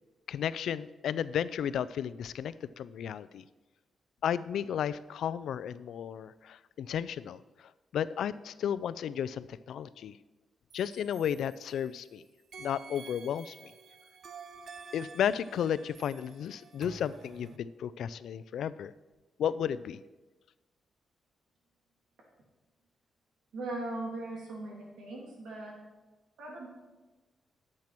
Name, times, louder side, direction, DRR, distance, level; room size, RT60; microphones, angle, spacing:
voice 1, 0.3-3.4 4.2-10.2 10.7-12.2 12.6-13.7 14.9-18.9 19.4-20.0, left 9 dB, 85° left, 17 dB, 0.4 m, -33 dB
sound 1, 10.7-12.1 12.5-17.6, right 5 dB, 50° right, 0.7 m, -50 dB
voice 2, 23.5-25.8 26.4-26.7, right 2 dB, 85° right, -2 dB, 3.1 m, -39 dB
10.5 x 7.6 x 6.0 m, 1.2 s
wide cardioid pair, 165°, 0 cm